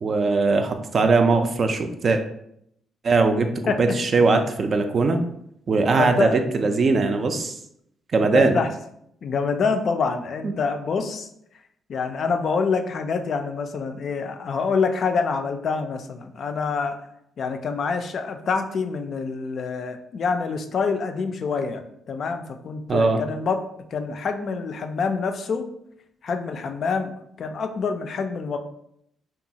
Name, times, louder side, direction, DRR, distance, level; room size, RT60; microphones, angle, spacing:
voice 1, 0.0-2.2 3.0-5.2 5.7-7.6 8.1-8.6 22.9-23.2, right 3 dB, 50° right, 7 dB, 0.4 m, -20 dB
voice 2, 6.0-6.5 8.3-8.7 9.2-11.3 11.9-17.0 17.4-21.8 22.1-23.6 23.9-25.7 26.2-28.6, left 5 dB, 60° left, 6 dB, 0.3 m, -26 dB
2.9 x 2.3 x 2.7 m, 0.73 s
supercardioid pair, 55°, 0 cm